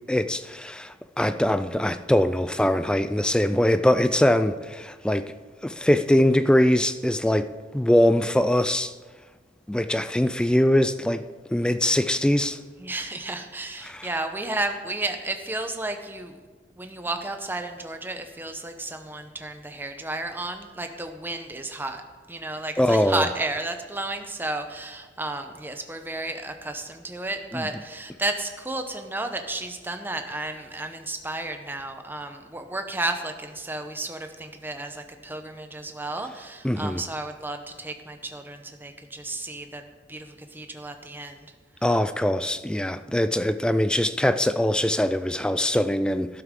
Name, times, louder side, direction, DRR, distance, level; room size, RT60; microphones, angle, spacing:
voice 1, 0.1-5.3 5.6-8.9 9.7-11.2 11.5-12.6 13.8-14.1 22.8-23.2 27.5-27.7 36.6-37.0 41.8-46.4, left 1 dB, 5° left, 0.3 m, -22 dB
voice 2, 12.8-16.3 16.8-22.0 22.3-39.8 40.1-41.5, right 2 dB, 10° right, 0.8 m, -32 dB
12.5 x 11.5 x 3.7 m
head